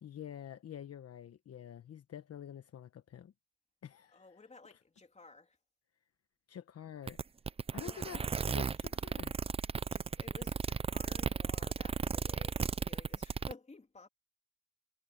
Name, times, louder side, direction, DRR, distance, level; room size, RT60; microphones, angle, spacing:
voice 1, 0.0-3.3 3.8-4.3 4.7-4.8 6.5-7.2 7.7-9.4, left 9 dB, 55° left, 1.2 m, -48 dB
voice 2, 4.1-5.6 7.8-8.3 9.9-14.1, left 3 dB, 20° left, 3.3 m, -55 dB
sound 1, 7.1-13.5, right 6 dB, 20° right, 0.4 m, -35 dB
cardioid pair, 90°, 30 cm